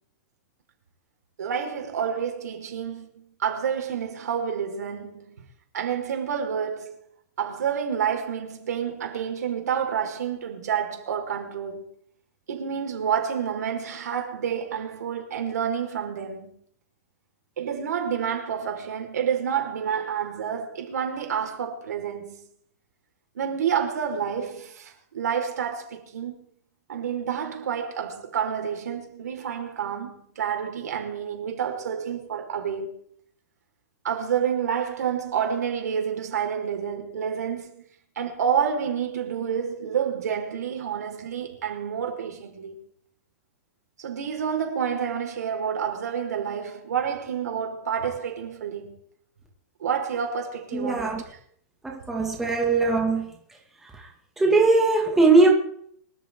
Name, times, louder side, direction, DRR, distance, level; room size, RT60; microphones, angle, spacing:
voice 1, 1.4-5.4 5.7-7.0 7.4-11.9 12.5-16.5 17.6-22.5 23.3-26.4 26.9-32.9 34.0-37.8 38.1-42.8 44.0-48.9 49.8-51.4, right 7 dB, 85° right, 4.9 m, -29 dB
voice 2, 50.7-51.2 51.8-53.3 54.4-55.5, right 3 dB, 5° right, 2.3 m, -20 dB
25.0 x 14.0 x 3.9 m
supercardioid pair, 180°, 9 cm